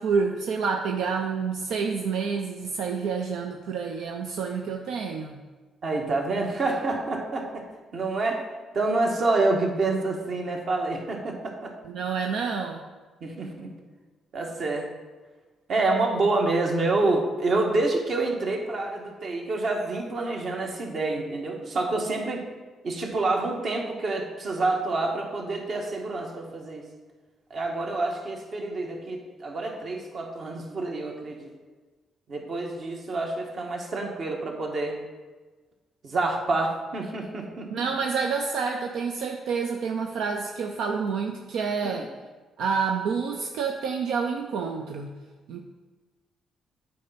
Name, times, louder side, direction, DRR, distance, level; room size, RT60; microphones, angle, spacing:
voice 1, 0.0-5.4 11.8-12.8 37.7-42.1 42.6-45.1 45.5-45.6, right 5 dB, 80° right, 2 dB, 0.6 m, -28 dB
voice 2, 5.8-7.6 7.9-8.4 8.7-11.7 13.2-13.7 14.3-14.9 15.7-22.4 22.8-26.8 27.5-31.5 32.3-35.0 36.0-37.7 41.8-42.0, right 2 dB, 55° right, 1 dB, 1.6 m, -27 dB
8.4 x 4.4 x 5.7 m, 1.3 s
cardioid pair, 90°, 0 cm